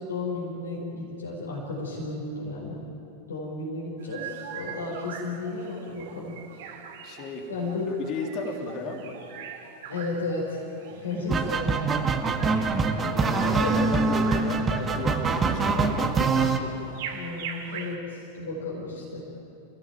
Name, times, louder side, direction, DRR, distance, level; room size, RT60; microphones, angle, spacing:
voice 1, 0.0-2.8 3.3-6.3 7.5-7.9 9.9-10.6 11.0-11.7 13.0-13.7 17.1-19.3, left 3 dB, 70° left, -4 dB, 4.8 m, -33 dB
sound 1, 4.0-18.0, right 7 dB, 55° right, 2.5 m, -42 dB
voice 2, 7.0-7.5 8.0-9.2 10.9-11.4 12.2-16.8, left 3 dB, 40° left, 2 dB, 3.3 m, -35 dB
sound 2, 11.3-16.6, right 4 dB, 20° right, 1.9 m, -24 dB
28.0 x 17.0 x 9.2 m, 2.8 s
figure-of-eight pair, 90°, 0 cm